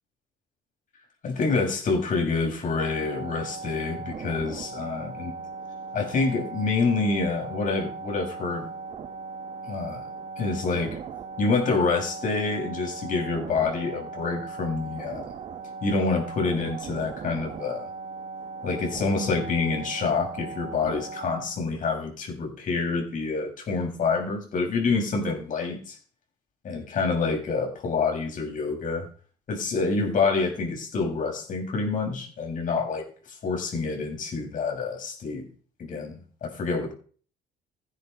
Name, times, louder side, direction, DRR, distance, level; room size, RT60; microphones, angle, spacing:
voice 1, 1.2-5.3 5.9-8.7 9.6-10.0 10.4-11.0 11.4-15.2 15.8-17.9 18.6-26.0 26.7-29.1 29.5-35.5 35.8-36.9, left 4 dB, 50° left, 6.9 m, -27 dB
sound 1, 2.8-21.5, right 4 dB, 45° right, 2.2 m, -38 dB
16.5 x 10.0 x 5.4 m
cardioid pair, 110°, 17 cm